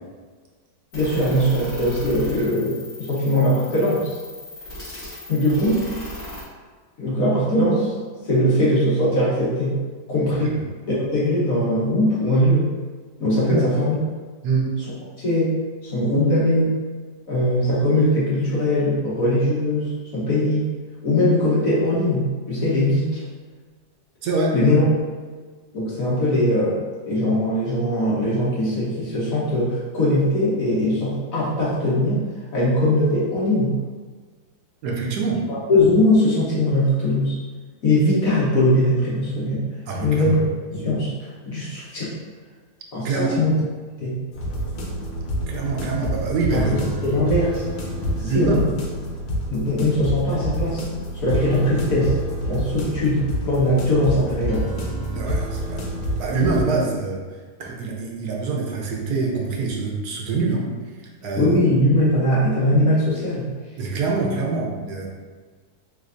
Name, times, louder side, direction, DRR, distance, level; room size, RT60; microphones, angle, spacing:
voice 1, 0.9-4.2 5.3-5.8 7.0-7.9 8.2-9.7 10.1-10.6 10.9-12.7 13.2-14.0 15.2-16.8 17.3-20.8 21.0-23.2 24.5-24.9 25.7-26.8 27.1-32.2 32.5-33.7 35.7-37.4 37.8-39.7 40.0-40.4 40.7-42.1 42.9-43.6 44.0-44.2 46.5-47.6 48.2-48.7 49.5-50.8 51.1-52.1 52.5-54.7 61.3-63.4, left 1 dB, 55° left, -8 dB, 1.3 m, -20 dB
sound 1, 0.9-6.4, left 1 dB, 40° left, 1.4 m, -37 dB
voice 2, 24.2-24.6 34.8-35.5 39.9-40.4 43.0-43.4 45.5-46.8 48.1-48.6 55.1-55.8 56.2-57.2 57.6-60.7 61.2-61.6 63.8-65.1, right 4 dB, 70° right, -1 dB, 1.1 m, -24 dB
sound 2, 44.3-56.6, equal, 85° left, 1.4 m, -28 dB
3.3 x 3.2 x 2.5 m, 1.5 s
omnidirectional pair, 1.9 m